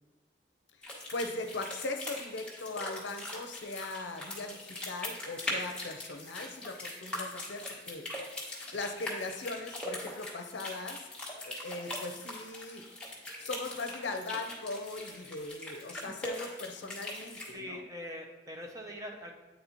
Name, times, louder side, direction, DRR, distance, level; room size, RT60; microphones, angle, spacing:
voice 1, 0.8-8.0 8.7-11.0 11.5-12.8 13.4-17.8, left 2 dB, 70° left, 5 dB, 0.6 m, -39 dB
sound 1, 0.8-17.5, left 1 dB, 5° left, 1.0 m, -41 dB
voice 2, 17.5-19.3, equal, 15° right, 2 dB, 0.6 m, -42 dB
8.6 x 4.1 x 2.9 m, 1.2 s
head